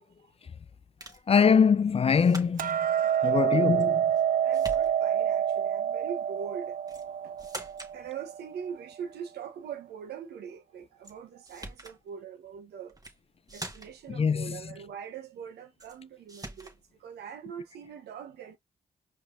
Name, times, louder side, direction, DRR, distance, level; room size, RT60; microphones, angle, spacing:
sound 1, 1.0-1.3 2.1-2.8 3.8-4.3 4.5-5.2 6.9-7.1 7.4-8.0 11.0-11.1 11.4-12.0 12.9-13.2 13.5-14.1 15.8-16.0 16.3-16.8, right 1 dB, 20° right, 1.6 m, -43 dB
voice 1, 1.3-2.8 3.2-4.0 14.1-14.6, left 6 dB, 35° left, 0.4 m, -23 dB
Hammer, 2.6-8.8, right 9 dB, 60° right, 0.4 m, -27 dB
voice 2, 3.0-3.6 4.3-6.8 7.2-7.3 7.9-13.0 13.5-18.6, right 7 dB, 90° right, 0.9 m, -42 dB
5.0 x 3.3 x 2.5 m
supercardioid pair, 45°, 16 cm